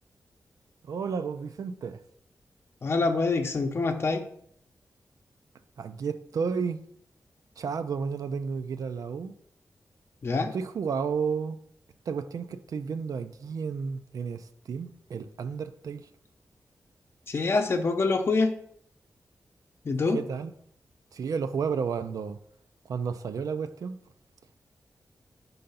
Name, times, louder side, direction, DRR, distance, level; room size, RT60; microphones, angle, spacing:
voice 1, 0.8-2.0 5.8-6.8 7.6-9.3 10.5-11.6 12.1-16.0 20.1-20.5 21.1-22.4 22.9-24.0, right 6 dB, 80° right, 0.4 m, -32 dB
voice 2, 2.8-4.2 10.2-10.5 17.3-18.5 19.8-20.2, left 3 dB, 45° left, 0.7 m, -25 dB
5.6 x 3.9 x 5.5 m
wide cardioid pair, 165°, 6 cm